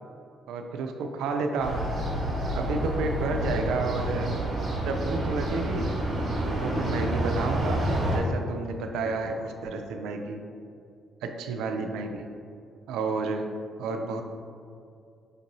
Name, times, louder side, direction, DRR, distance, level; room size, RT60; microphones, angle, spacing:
voice 1, 0.5-1.9 2.5-4.3 4.9-5.9 6.6-10.4 11.2-12.3 12.9-13.5 13.8-14.2, right 3 dB, 90° right, 5 dB, 0.3 m, -31 dB
sound 1, 1.6-8.2, right 1 dB, 50° right, 1.1 m, -28 dB
5.3 x 2.6 x 2.9 m, 2.4 s
cardioid pair, 90°, 0 cm